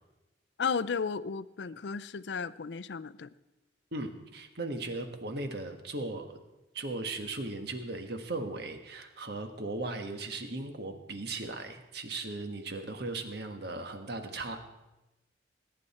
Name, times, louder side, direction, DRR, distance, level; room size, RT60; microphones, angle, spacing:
voice 1, 0.6-3.3, left 5 dB, 65° left, 15 dB, 0.5 m, -34 dB
voice 2, 3.9-6.4 6.7-14.6, right 2 dB, 55° right, 6 dB, 1.4 m, -37 dB
21.0 x 10.0 x 4.3 m, 1.0 s
head